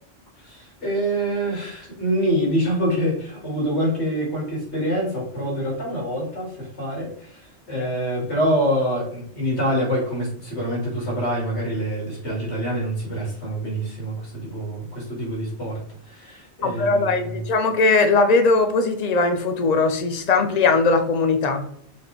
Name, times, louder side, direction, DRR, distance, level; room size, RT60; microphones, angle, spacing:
voice 1, 0.4-17.4, equal, 90° left, -3 dB, 3.2 m, -26 dB
voice 2, 16.6-21.7, left 3 dB, 40° left, 7 dB, 0.8 m, -19 dB
6.4 x 4.3 x 3.6 m, 0.65 s
omnidirectional pair, 1.1 m